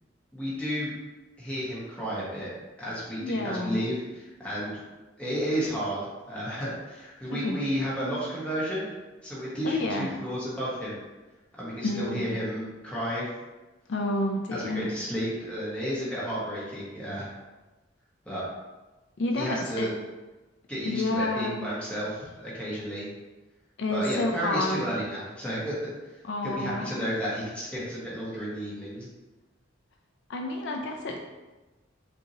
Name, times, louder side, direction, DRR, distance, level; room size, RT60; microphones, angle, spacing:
voice 1, 0.3-0.9 1.4-2.5 2.8-4.8 5.2-8.9 9.2-11.0 11.6-13.3 14.5-17.3 18.2-18.4 19.3-19.9 20.7-23.1 23.9-25.9 26.4-29.1, equal, 5° left, -8 dB, 1.1 m, -32 dB
voice 2, 3.2-3.8 7.3-7.6 9.6-10.1 11.8-12.4 13.9-14.9 19.2-19.9 20.9-21.7 23.8-24.8 26.2-26.9 30.3-31.2, left 2 dB, 60° left, 2 dB, 0.4 m, -29 dB
5.2 x 2.8 x 2.9 m, 1.1 s
head